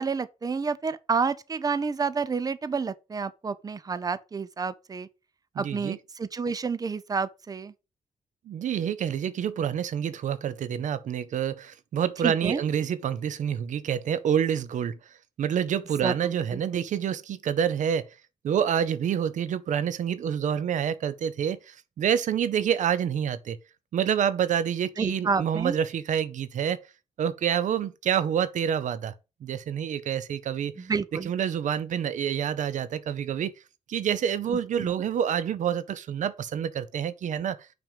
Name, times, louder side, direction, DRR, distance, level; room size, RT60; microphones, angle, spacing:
voice 1, 0.0-5.1 5.6-7.7 12.2-12.6 16.0-16.6 25.0-25.8 30.8-31.3 34.8-34.9, right 5 dB, 30° right, 0.7 m, -29 dB
voice 2, 5.6-6.0 8.5-14.9 15.4-18.1 18.4-23.6 23.9-26.9 27.2-29.1 29.4-30.9 31.2-33.5 33.9-37.6, right 8 dB, 75° right, 0.7 m, -27 dB
6.0 x 5.3 x 6.8 m
cardioid pair, 110°, 13 cm